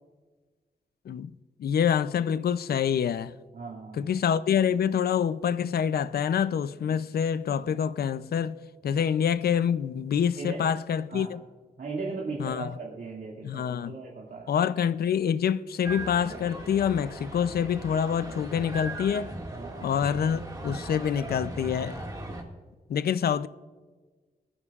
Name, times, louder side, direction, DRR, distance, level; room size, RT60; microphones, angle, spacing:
voice 1, 1.6-3.3 3.9-8.6 8.8-11.4 12.4-12.7 13.4-14.0 14.5-19.3 19.8-22.0 22.9-23.5, left 8 dB, 90° left, 0.5 m, -26 dB
voice 2, 3.5-4.1 6.9-7.0 10.4-10.6 11.1-11.3 11.8-14.5 18.3-18.4 19.5-19.9, right 3 dB, 75° right, 2.3 m, -37 dB
sound 1, 15.8-22.4, right 1 dB, 25° right, 2.0 m, -38 dB
20.0 x 14.0 x 2.4 m
wide cardioid pair, 160°, 16 cm